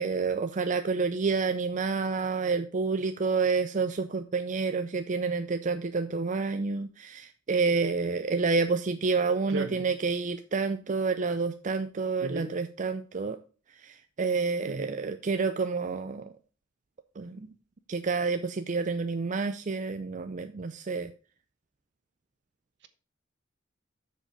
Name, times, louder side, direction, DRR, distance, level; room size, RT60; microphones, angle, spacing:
voice 1, 0.0-13.4 13.8-16.3 17.2-17.5 17.9-21.1, right 4 dB, 40° right, 0.5 m, -29 dB
voice 2, 9.5-9.9 12.2-12.5 14.7-14.9, right 2 dB, 65° right, 1.2 m, -35 dB
7.6 x 6.7 x 4.8 m
head